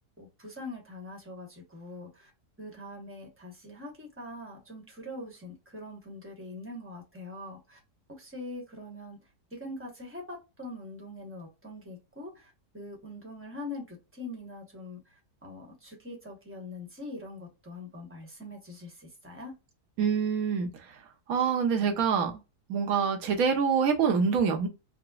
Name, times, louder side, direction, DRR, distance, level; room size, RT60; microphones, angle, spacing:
voice 1, 0.2-2.3 2.6-7.8 8.2-9.2 9.5-15.0 15.4-19.5, left 2 dB, 10° right, 0.8 m, -43 dB
voice 2, 20.0-20.7 21.3-22.3 22.7-24.7, right 6 dB, 60° right, 1.2 m, -25 dB
5.0 x 2.1 x 2.3 m
omnidirectional pair, 1.8 m